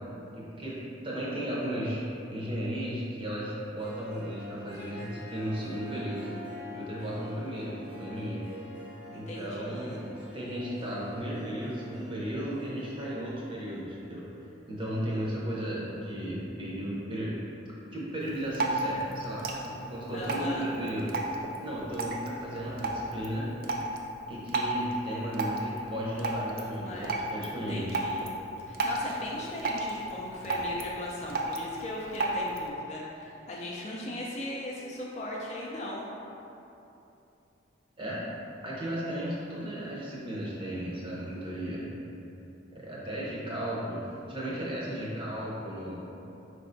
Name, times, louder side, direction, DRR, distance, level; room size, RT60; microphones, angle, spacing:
voice 1, 0.3-2.0 2.3-6.3 6.7-8.4 9.1-14.2 14.7-17.4 17.9-21.2 21.6-23.5 24.3-27.9 38.0-38.2 38.6-41.9 42.7-46.0, equal, 25° right, -7 dB, 0.7 m, -35 dB
Harp, 3.6-14.8, equal, 65° right, 0.8 m, -46 dB
voice 2, 9.1-10.0 20.1-20.7 26.8-27.2 27.7-28.2 28.7-36.0, left 1 dB, 35° left, -3 dB, 0.4 m, -38 dB
Drip, 18.2-32.7, right 2 dB, 50° right, 0.3 m, -34 dB
4.6 x 3.3 x 2.6 m, 2.9 s
head